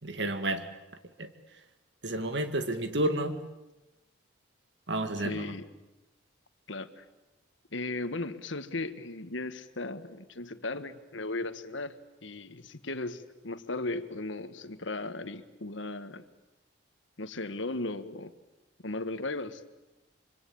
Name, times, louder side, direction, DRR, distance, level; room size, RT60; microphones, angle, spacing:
voice 1, 0.0-0.7 1.2-1.3 2.0-3.4 4.9-5.5, right 1 dB, 60° right, 2.1 m, -31 dB
voice 2, 5.2-5.7 6.7-7.0 7.7-16.2 17.2-18.3 18.8-19.6, left 2 dB, 75° left, 1.5 m, -36 dB
25.0 x 25.0 x 8.7 m
head